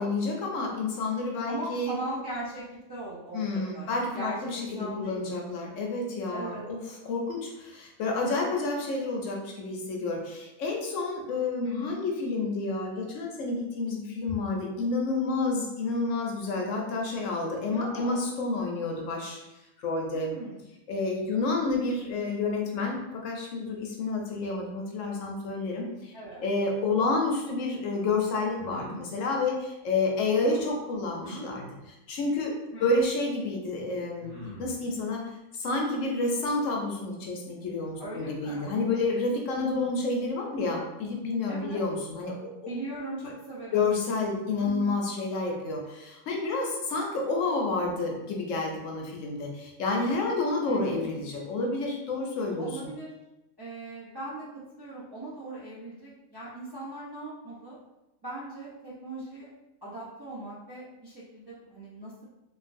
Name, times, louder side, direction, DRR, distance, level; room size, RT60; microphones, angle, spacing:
voice 1, 0.0-2.0 3.3-19.4 19.8-20.3 20.9-26.1 26.4-34.3 34.6-35.3 35.6-42.5 43.7-52.7, left 3 dB, 70° left, 0 dB, 0.9 m, -29 dB
voice 2, 1.5-5.2 6.3-6.6 11.6-12.0 17.6-18.3 20.1-20.6 26.1-26.4 30.4-30.6 32.7-32.9 38.0-38.7 39.6-39.9 41.5-41.8 42.6-43.9 44.6-45.0 50.7-51.1 52.6-53.1 53.6-57.8 58.2-59.5 59.8-62.3, right 1 dB, 35° right, -9 dB, 0.4 m, -39 dB
sound 1, 28.6-29.0 31.2-31.5 33.0-33.1 34.2-34.8, equal, 55° right, 1.2 m, -41 dB
3.1 x 2.4 x 2.5 m, 0.96 s
omnidirectional pair, 1.5 m